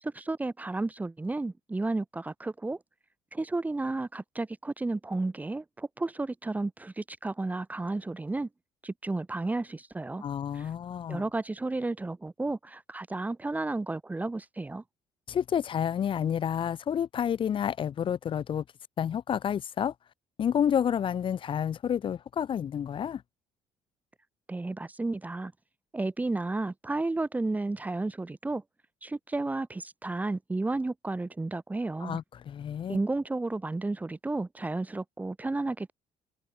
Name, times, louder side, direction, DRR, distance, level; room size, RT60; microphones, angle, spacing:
voice 1, 0.0-2.8 3.3-8.5 8.8-10.2 10.5-10.7 11.1-14.8 24.5-25.5 25.9-28.6 29.0-32.2 32.9-35.9, right 2 dB, 15° right, 1.5 m, -32 dB
voice 2, 10.2-11.2 15.3-18.6 19.0-19.9 20.4-23.2 32.0-33.0, left 8 dB, 45° left, 2.2 m, -29 dB
cardioid pair, 125°, 12 cm